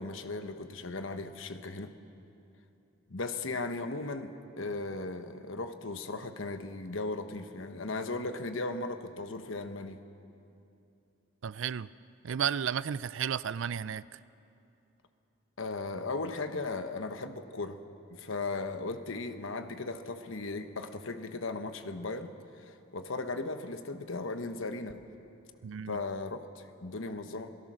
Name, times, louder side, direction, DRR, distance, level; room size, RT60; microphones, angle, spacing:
voice 1, 0.0-1.9 3.1-10.0 15.6-17.8 18.1-25.0 25.9-27.5, left 3 dB, 70° left, 8 dB, 1.1 m, -37 dB
voice 2, 11.4-11.9 12.2-14.2 25.6-26.0, right 8 dB, 70° right, 18 dB, 0.4 m, -33 dB
27.0 x 17.5 x 6.3 m, 2.8 s
head